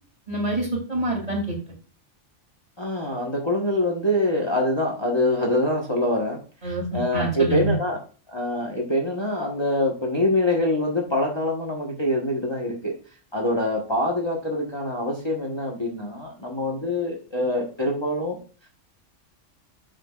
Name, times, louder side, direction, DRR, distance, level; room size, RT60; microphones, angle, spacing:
voice 1, 0.3-1.6 6.6-7.8, right 1 dB, 30° right, -1 dB, 2.9 m, -26 dB
voice 2, 2.8-6.4 6.6-8.0 8.3-12.9 13.3-18.4, left 1 dB, 20° left, -2 dB, 1.2 m, -25 dB
10.0 x 6.6 x 2.4 m, 0.38 s
omnidirectional pair, 1.3 m